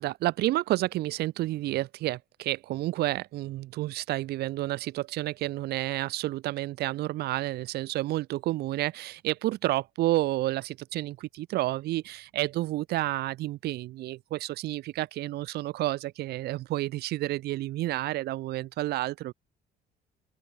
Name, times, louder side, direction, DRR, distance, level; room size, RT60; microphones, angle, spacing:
voice 1, 0.0-19.3, right 16 dB, 75° right, 0.9 m, -30 dB
open air
cardioid pair, 110°, 17 cm